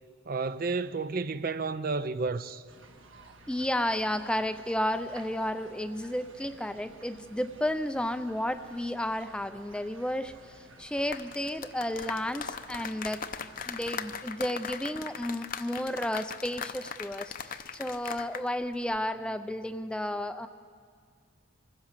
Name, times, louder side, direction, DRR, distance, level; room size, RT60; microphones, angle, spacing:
voice 1, 0.3-2.6, right 4 dB, 45° right, 0.5 m, -31 dB
sound 1, 2.7-14.2, right 3 dB, 70° right, 1.7 m, -53 dB
voice 2, 3.5-13.2 13.6-20.5, left 1 dB, 5° left, 0.4 m, -32 dB
sound 2, 11.0-18.5 18.7-19.0, left 6 dB, 40° left, 0.7 m, -39 dB
24.5 x 15.5 x 7.3 m
head